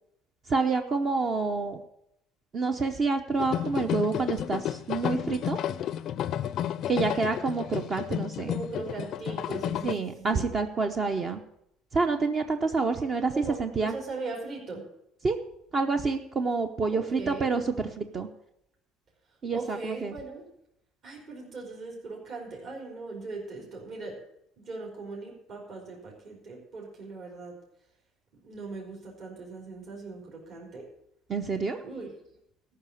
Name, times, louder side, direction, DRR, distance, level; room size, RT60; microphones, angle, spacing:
voice 1, 0.5-1.8 2.5-5.6 6.9-8.5 9.8-11.4 11.9-13.3 13.6-13.9 15.2-15.4 15.7-18.3 19.4-20.1 31.3-31.8, right 4 dB, 35° right, 6 dB, 0.8 m, -28 dB
sound 1, 3.4-9.9, left 10 dB, 50° left, 0.4 m, -32 dB
voice 2, 8.5-10.5 13.3-14.8 16.9-17.5 19.5-20.4 21.0-24.2 24.6-27.5 28.4-30.9 31.8-32.1, right 3 dB, 50° right, -2 dB, 4.2 m, -39 dB
13.5 x 5.7 x 8.6 m, 0.79 s
cardioid pair, 125°, 0 cm